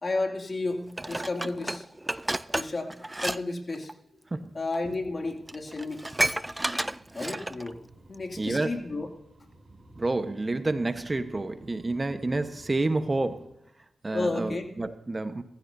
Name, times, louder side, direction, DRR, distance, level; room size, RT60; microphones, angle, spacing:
voice 1, 0.0-1.9 2.5-2.9 3.2-3.9 4.5-6.0 7.1-7.8 8.1-9.1 14.1-14.7, left 2 dB, 45° left, 2.6 m, -32 dB
Dishes pots and pans, 1.0-3.4 3.7-3.9 4.7-4.8 5.2-5.3 5.5-7.7 8.1-8.2, right 1 dB, 15° right, 0.5 m, -31 dB
sound 1, 5.1-13.5, right 1 dB, 50° right, 6.4 m, -54 dB
voice 2, 8.4-8.8 10.0-13.5 14.0-15.4, right 2 dB, 30° right, 1.1 m, -29 dB
21.5 x 15.0 x 2.7 m
cardioid pair, 50°, 0 cm